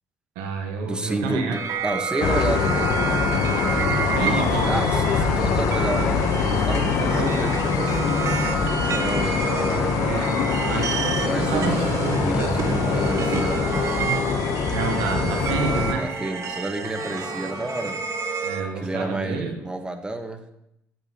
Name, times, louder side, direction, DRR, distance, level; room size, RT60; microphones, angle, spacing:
voice 1, 0.3-1.6 4.1-4.8 7.0-7.4 10.0-11.8 12.0-12.3 14.7-16.1 18.4-19.6, right 5 dB, 85° right, 2 dB, 1.1 m, -29 dB
voice 2, 0.8-2.9 4.1-10.0 11.2-11.8 12.2-14.1 16.0-18.0 18.7-20.4, right 2 dB, 15° right, 5 dB, 1.3 m, -31 dB
sound 1, 1.5-18.6, right 5 dB, 55° right, 1.1 m, -29 dB
sound 2, 2.2-15.9, left 5 dB, 70° left, 0.9 m, -24 dB
sound 3, 5.0-8.1 8.5-11.1 11.6-14.3 14.9-19.1, left 2 dB, 45° left, 3.0 m, -40 dB
8.9 x 8.1 x 2.9 m, 0.81 s
supercardioid pair, 60°, 6 cm